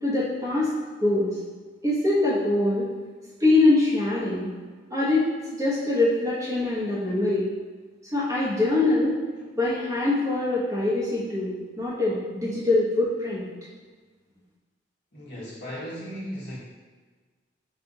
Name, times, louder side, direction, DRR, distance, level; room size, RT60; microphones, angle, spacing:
voice 1, 0.0-0.7 1.0-1.3 1.8-2.9 3.4-4.5 4.9-7.4 8.1-9.2 9.6-13.4, left 2 dB, 15° right, -9 dB, 1.1 m, -23 dB
voice 2, 15.1-16.6, equal, 65° left, -7 dB, 1.4 m, -36 dB
4.3 x 2.5 x 4.0 m, 1.4 s
head